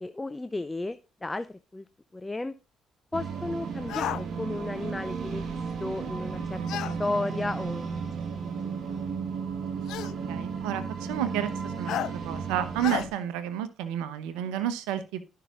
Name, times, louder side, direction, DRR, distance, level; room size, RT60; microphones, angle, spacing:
voice 1, 0.0-1.5 1.7-1.8 2.1-2.6 3.1-8.1 8.6-9.0, left 2 dB, 20° left, 12 dB, 0.6 m, -34 dB
sound 1, 3.1-13.1, right 5 dB, 55° right, 1.8 m, -34 dB
sound 2, 3.9-4.2 6.7-7.0 8.2-8.3 9.9-10.2 11.9-12.1 12.8-13.1, left 13 dB, 70° left, 0.5 m, -31 dB
voice 2, 10.3-12.0 12.2-15.2, right 11 dB, 75° right, 13 dB, 0.9 m, -31 dB
15.0 x 5.7 x 2.5 m, 0.30 s
hypercardioid pair, 45°, 0 cm